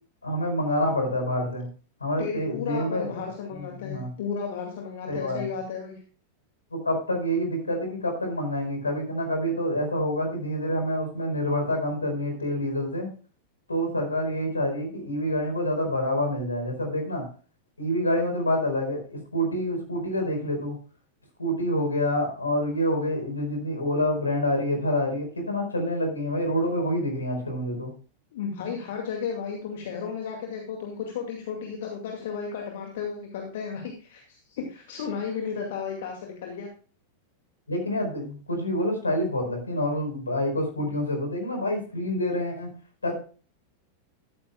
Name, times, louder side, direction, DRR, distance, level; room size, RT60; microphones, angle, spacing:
voice 1, 0.2-1.7 2.0-3.1 3.8-4.1 5.1-5.4 6.7-13.1 13.7-17.2 17.8-19.0 19.3-20.7 21.4-27.9 37.7-42.7 43.0-43.2, equal, 80° left, 4 dB, 4.6 m, -27 dB
voice 2, 2.2-6.0 28.3-36.7, left 6 dB, 55° left, 2 dB, 2.2 m, -34 dB
13.5 x 13.0 x 2.3 m, 0.38 s
figure-of-eight pair, 90°, 0 cm